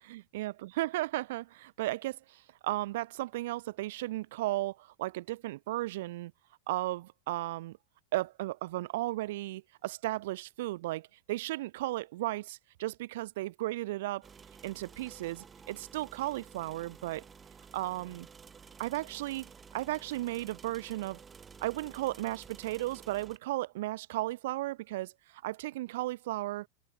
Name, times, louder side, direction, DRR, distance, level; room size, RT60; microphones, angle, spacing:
voice 1, 0.1-6.3 6.7-7.8 8.1-14.3 14.6-17.2 17.7-18.3 18.8-21.2 21.6-26.7, right 17 dB, 70° right, 0.4 m, -35 dB
sound 1, 14.2-23.4, right 6 dB, 15° right, 2.9 m, -53 dB
supercardioid pair, 155°, 0 cm